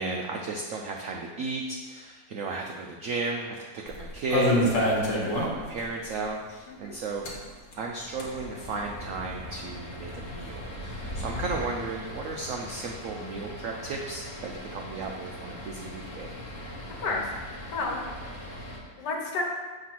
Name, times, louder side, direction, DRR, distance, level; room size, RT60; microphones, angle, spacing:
voice 1, 0.0-7.2 7.8-16.4, right 3 dB, 85° right, 1 dB, 0.7 m, -34 dB
sound 1, 3.9-5.8 6.1-6.2 6.5-6.6 7.1-18.8, left 1 dB, 45° left, 1.4 m, -33 dB
voice 2, 17.7-18.3 19.0-19.4, left 3 dB, 65° left, 0 dB, 1.6 m, -31 dB
7.5 x 3.0 x 5.9 m, 1.4 s
omnidirectional pair, 2.0 m